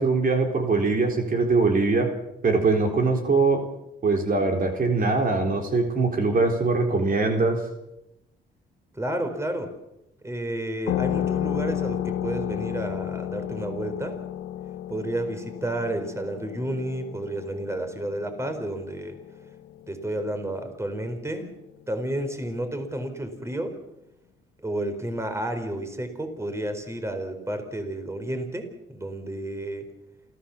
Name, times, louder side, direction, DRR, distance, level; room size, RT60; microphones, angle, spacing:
voice 1, 0.0-2.1 2.4-3.6 4.0-7.6, right 3 dB, 45° right, 3 dB, 3.7 m, -22 dB
voice 2, 8.9-9.7 10.2-14.2 14.9-19.2 19.9-21.5 21.9-23.7 24.6-29.9, right 1 dB, 15° right, 7 dB, 4.3 m, -31 dB
sound 1, 10.9-20.1, left 11 dB, 90° left, 1.0 m, -32 dB
28.0 x 15.0 x 7.1 m, 0.89 s
cardioid pair, 90°, 20 cm